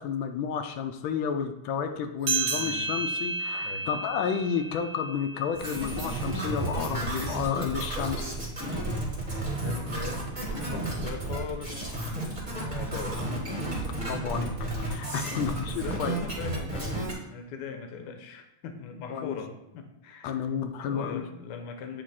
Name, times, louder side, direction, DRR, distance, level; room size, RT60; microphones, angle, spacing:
voice 1, 0.0-8.4 13.9-16.2 19.1-19.3 20.2-21.2, left 7 dB, 90° left, 6 dB, 1.4 m, -31 dB
sound 1, 2.2-7.1, right 4 dB, 90° right, 1.8 m, -33 dB
sound 2, 5.5-17.1, right 2 dB, 15° right, 1.5 m, -32 dB
voice 2, 9.5-13.4 15.0-20.4 20.8-22.0, left 6 dB, 70° left, 5 dB, 1.2 m, -41 dB
8.6 x 2.9 x 4.1 m, 0.83 s
omnidirectional pair, 2.1 m